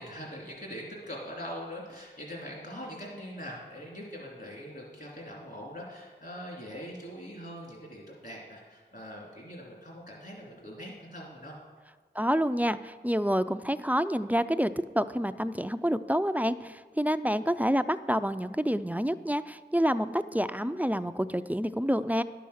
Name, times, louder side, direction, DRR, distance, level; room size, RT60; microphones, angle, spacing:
voice 1, 0.0-11.6, equal, 55° left, -3 dB, 2.7 m, -42 dB
voice 2, 12.2-22.2, equal, 10° right, 12 dB, 0.3 m, -28 dB
11.0 x 6.9 x 6.4 m, 1.5 s
wide cardioid pair, 40°, 19 cm